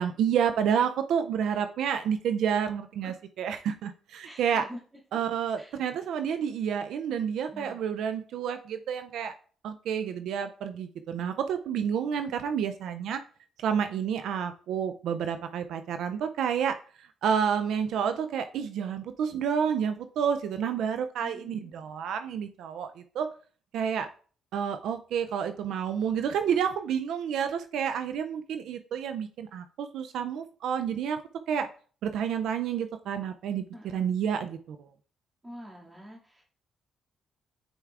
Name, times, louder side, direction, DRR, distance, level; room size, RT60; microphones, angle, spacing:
voice 1, 0.0-4.7 5.1-9.3 9.6-13.2 13.6-23.3 23.7-24.1 24.5-31.2 31.5-31.7 32.0-34.8, right 7 dB, 80° right, 9 dB, 0.4 m, -29 dB
voice 2, 4.2-4.8 5.1-5.2 5.6-5.9 7.5-7.8 21.2-21.7 33.7-34.1 35.4-36.4, equal, 15° right, -3 dB, 2.2 m, -46 dB
8.8 x 4.5 x 2.4 m, 0.42 s
cardioid pair, 90°, 0 cm